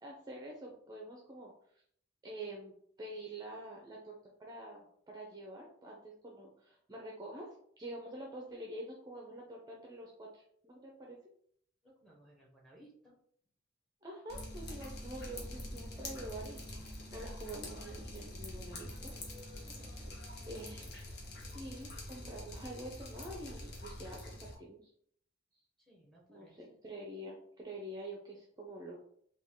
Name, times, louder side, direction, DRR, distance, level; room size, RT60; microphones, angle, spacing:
voice 1, 0.0-1.8 2.2-2.7 3.0-7.5 7.8-11.2 14.0-19.1 19.4-20.1 20.4-21.0 21.4-24.9 26.3-29.0, right 1 dB, 20° right, -1 dB, 0.5 m, -47 dB
voice 2, 11.8-13.2 19.7-20.1 25.8-26.8, right 1 dB, ahead, -2 dB, 0.9 m, -61 dB
Drip, 14.3-24.5, left 1 dB, 55° left, 0.9 m, -45 dB
3.5 x 2.3 x 3.5 m, 0.65 s
head